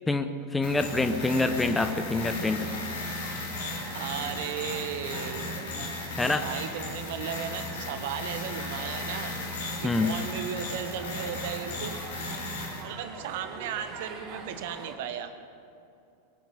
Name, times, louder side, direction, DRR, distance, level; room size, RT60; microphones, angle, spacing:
voice 1, 0.1-2.7 6.2-6.5 9.8-10.1, left 3 dB, 10° left, 9 dB, 0.8 m, -26 dB
sound 1, 0.6-12.8, left 2 dB, 60° left, 3.5 m, -36 dB
sound 2, 0.7-15.0, right 4 dB, 35° right, 1.8 m, -45 dB
voice 2, 3.9-5.6 6.0-9.4 9.8-12.0 12.8-15.3, right 8 dB, 50° right, 9 dB, 1.2 m, -36 dB
22.5 x 9.1 x 7.1 m, 2.7 s
figure-of-eight pair, 90°, 0 cm